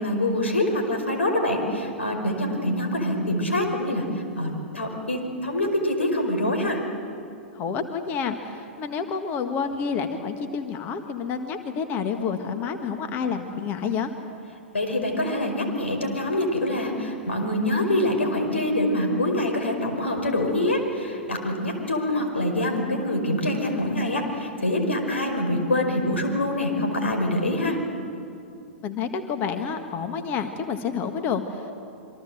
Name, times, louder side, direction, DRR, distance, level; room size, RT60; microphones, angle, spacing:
voice 1, 0.0-4.0 4.3-6.8 14.7-27.8, left 1 dB, 75° left, 3 dB, 5.1 m, -25 dB
voice 2, 7.5-14.1 28.8-31.7, left 6 dB, 30° left, 7 dB, 1.7 m, -29 dB
28.0 x 25.0 x 7.8 m, 2.8 s
figure-of-eight pair, 105°, 6 cm